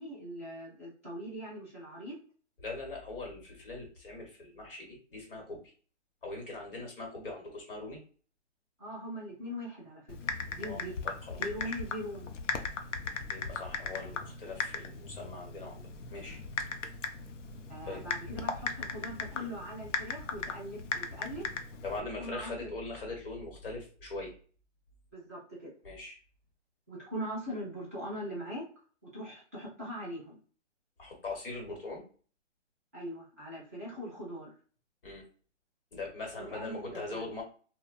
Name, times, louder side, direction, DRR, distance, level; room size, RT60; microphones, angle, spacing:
voice 1, 0.0-2.2 8.8-10.1 10.5-10.9 11.4-12.3 17.7-21.4 22.2-22.7 25.1-25.7 26.9-28.7 29.0-30.4 32.9-34.5 36.4-37.3, equal, 10° right, -9 dB, 0.5 m, -41 dB
voice 2, 2.6-5.7 6.2-8.0 10.6-11.8 13.3-16.4 17.9-18.0 21.8-24.3 25.8-26.1 31.0-32.0 35.0-35.2 35.9-37.4, left 3 dB, 50° left, 0 dB, 1.1 m, -41 dB
Typing, 10.1-22.0, left 5 dB, 80° left, 0.6 m, -38 dB
2.7 x 2.1 x 2.3 m, 0.41 s
hypercardioid pair, 170°, 36 cm